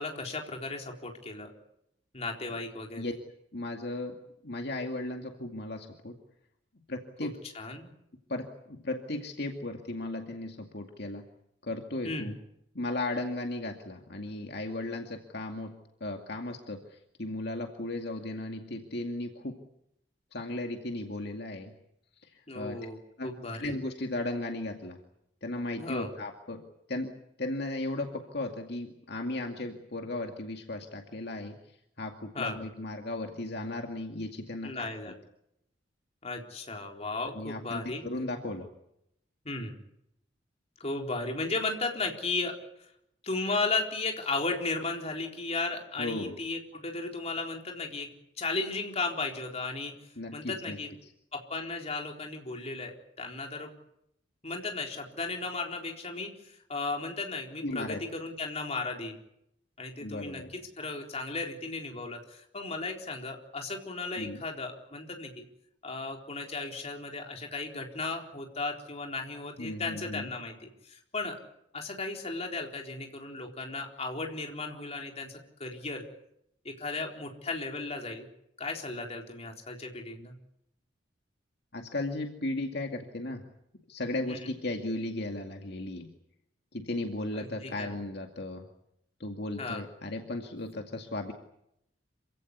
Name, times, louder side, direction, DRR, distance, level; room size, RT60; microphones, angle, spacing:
voice 1, 0.0-1.5 2.1-3.1 7.2-7.9 12.0-12.3 22.5-23.7 25.8-26.1 32.3-32.6 34.6-35.1 36.2-38.0 39.4-39.8 40.8-42.6 43.2-48.1 48.4-49.9 50.3-50.9 51.3-53.7 54.4-59.2 59.8-65.4 65.8-71.4 71.7-76.0 76.6-78.3 78.6-80.3 84.3-84.5 87.3-87.9 89.6-89.8, left 3 dB, 35° left, 2 dB, 4.0 m, -35 dB
voice 2, 3.5-6.2 6.9-7.4 8.3-11.2 11.6-12.3 12.7-19.6 20.3-21.7 22.2-22.8 23.2-23.3 23.6-25.0 25.4-27.1 27.4-31.5 32.0-34.7 37.3-38.7 46.0-46.4 50.2-50.8 51.0-51.1 57.6-58.0 60.0-60.5 64.2-64.4 69.6-70.3 81.7-83.4 83.9-86.1 86.7-88.7 89.2-91.3, left 2 dB, 60° left, 3 dB, 2.3 m, -36 dB
27.5 x 17.0 x 9.6 m, 0.79 s
head